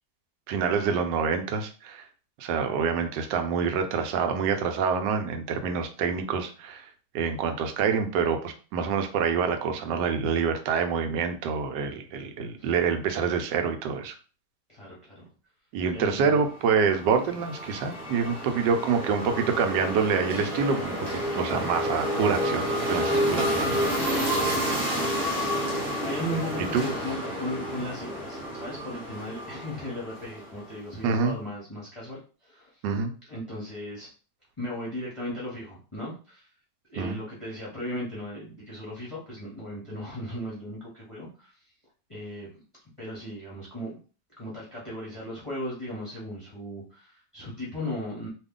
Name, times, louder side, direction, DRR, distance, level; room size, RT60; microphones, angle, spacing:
voice 1, 0.5-2.0 2.4-6.8 7.1-14.1 15.7-23.8 26.7-26.8 31.0-31.3 32.8-33.1 37.0-37.2, right 6 dB, 85° right, 6 dB, 1.2 m, -26 dB
voice 2, 14.7-15.3 15.9-16.4 26.0-32.8 33.3-34.1 34.6-36.5 36.9-41.6 42.1-42.5 43.0-43.9 44.4-48.3, left 1 dB, 30° left, -6 dB, 0.6 m, -37 dB
sound 1, 16.5-30.8, equal, 40° right, 0.8 m, -30 dB
2.7 x 2.4 x 3.6 m, 0.37 s
omnidirectional pair, 1.8 m